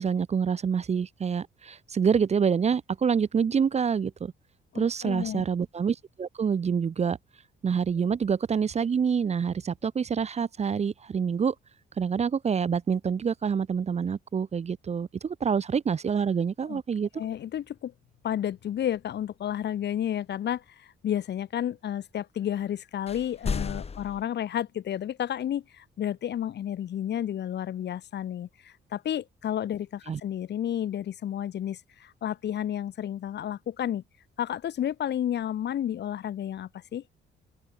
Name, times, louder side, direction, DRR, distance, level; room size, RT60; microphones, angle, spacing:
voice 1, 0.0-4.3 4.7-7.2 7.6-11.5 12.0-17.1 30.1-30.2, right 6 dB, 35° right, 0.6 m, -27 dB
voice 2, 4.7-5.4 16.7-16.8 17.2-17.9 18.2-34.0 34.4-37.0, left 10 dB, 60° left, 1.1 m, -31 dB
sound 1, 23.1-24.2, left 5 dB, 30° left, 1.3 m, -32 dB
open air
cardioid pair, 90°, 20 cm